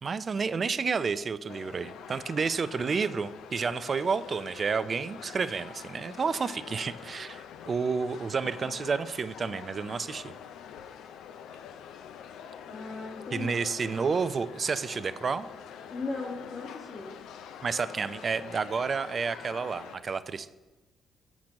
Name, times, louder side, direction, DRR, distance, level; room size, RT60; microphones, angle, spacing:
voice 1, 0.0-10.3 13.3-15.5 17.6-20.5, right 5 dB, 45° right, 14 dB, 0.4 m, -30 dB
sound 1, 1.5-20.0, left 8 dB, 85° left, 0.4 m, -45 dB
voice 2, 12.7-13.5 15.9-17.2, left 3 dB, 50° left, -4 dB, 1.5 m, -37 dB
7.3 x 6.1 x 5.2 m, 1.2 s
cardioid pair, 70°, 0 cm